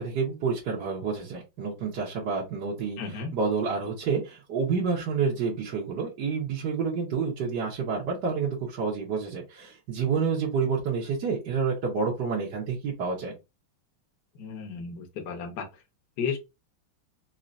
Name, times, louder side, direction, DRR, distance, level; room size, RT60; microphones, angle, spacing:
voice 1, 0.0-13.4, right 5 dB, 60° right, 1.6 m, -29 dB
voice 2, 3.0-3.3 14.4-15.7 16.2-16.4, left 6 dB, 60° left, 1.4 m, -33 dB
4.3 x 2.8 x 2.5 m
omnidirectional pair, 2.3 m